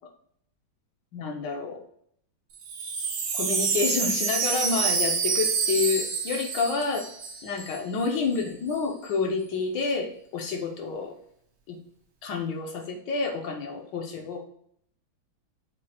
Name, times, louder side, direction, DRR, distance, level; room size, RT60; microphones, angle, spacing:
voice 1, 1.1-1.8 3.3-7.0 7.4-11.1 11.7-11.8 12.2-14.4, left 4 dB, 75° left, 2 dB, 1.2 m, -29 dB
Wind chime, 2.5-7.8 8.0-8.1 8.3-8.8, right 5 dB, 85° right, 1.6 m, -28 dB
6.1 x 2.4 x 2.8 m, 0.67 s
omnidirectional pair, 2.2 m